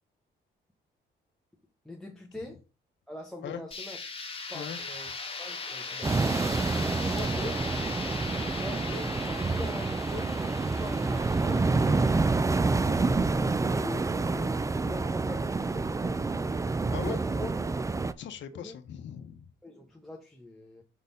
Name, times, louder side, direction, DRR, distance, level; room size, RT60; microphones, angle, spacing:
voice 1, 1.8-2.6 3.1-4.0 4.3-5.1 5.4-6.6 7.0-7.6 8.6-10.3 10.6-13.2 13.4-16.5 17.1-17.5 18.5-18.8 19.6-20.8, left 1 dB, ahead, 1.2 m, -43 dB
sound 1, 3.7-13.5, left 4 dB, 30° left, 1.5 m, -39 dB
sound 2, 6.0-18.1, right 3 dB, 15° right, 0.4 m, -28 dB
voice 2, 18.2-19.5, left 9 dB, 65° left, 0.9 m, -39 dB
5.5 x 4.1 x 5.2 m
cardioid pair, 90°, 20 cm